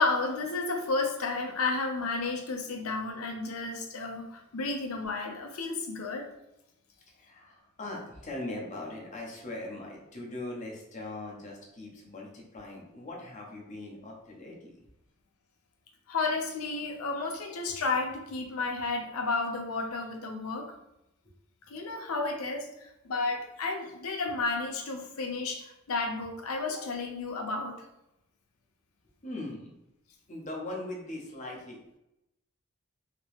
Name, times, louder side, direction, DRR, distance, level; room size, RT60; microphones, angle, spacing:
voice 1, 0.0-6.3 16.1-20.8 21.7-27.8, left 3 dB, 90° left, 3 dB, 0.6 m, -32 dB
voice 2, 7.1-14.8 29.2-29.7 30.3-32.0, left 2 dB, 35° left, -2 dB, 0.8 m, -40 dB
2.9 x 2.9 x 3.1 m, 0.87 s
head